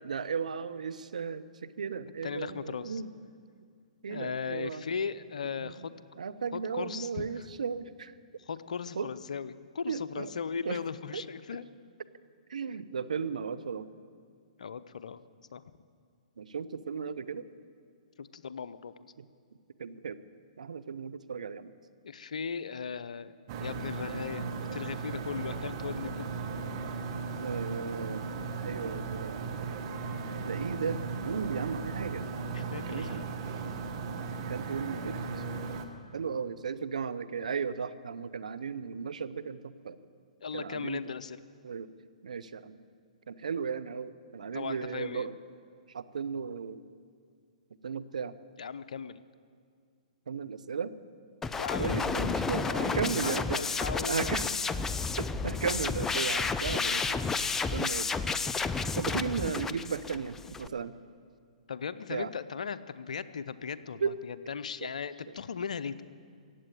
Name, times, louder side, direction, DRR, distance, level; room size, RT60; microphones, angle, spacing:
voice 1, 0.0-3.1 4.0-4.8 5.6-5.9 6.2-8.1 9.0-9.1 9.9-10.3 10.6-10.8 11.1-11.2 12.5-13.9 16.4-17.4 19.8-20.2 20.6-21.7 27.4-28.3 28.6-29.5 30.5-32.2 32.9-33.2 34.5-35.2 36.1-40.0 40.5-41.0 41.6-41.9 42.2-42.8 43.3-45.4 45.9-46.8 47.8-48.3 50.3-50.9 51.8-53.6 54.1-54.5 55.2-57.2 57.7-58.1 58.9-60.9 62.1-62.3 64.0-64.1 64.8-64.9, right 6 dB, 75° right, 14 dB, 0.6 m, -35 dB
voice 2, 2.2-3.0 4.1-5.9 6.5-7.3 8.5-11.6 14.6-15.2 15.5-15.6 18.2-19.1 22.0-26.3 32.5-33.3 40.4-41.4 44.5-45.3 48.6-49.2 51.5-52.1 52.6-54.6 61.7-66.0, left 6 dB, 75° left, 13 dB, 0.6 m, -38 dB
sound 1, 23.5-35.9, right 4 dB, 45° right, 1.3 m, -36 dB
sound 2, 51.4-60.7, left 4 dB, 10° left, 0.4 m, -31 dB
15.0 x 8.9 x 9.1 m, 2.2 s
hypercardioid pair, 125°, 4 cm